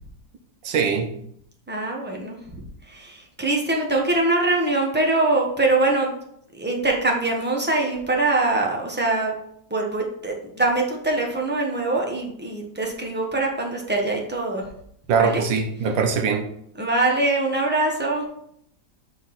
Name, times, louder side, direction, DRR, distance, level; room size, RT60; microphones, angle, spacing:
voice 1, 0.6-1.1 15.1-16.4, right 5 dB, 75° right, 5 dB, 1.6 m, -21 dB
voice 2, 1.7-6.1 6.5-9.3 9.7-14.6 15.2-15.4 16.8-18.2, right 2 dB, 10° right, 0 dB, 0.5 m, -23 dB
6.0 x 5.0 x 4.1 m, 0.69 s
omnidirectional pair, 2.1 m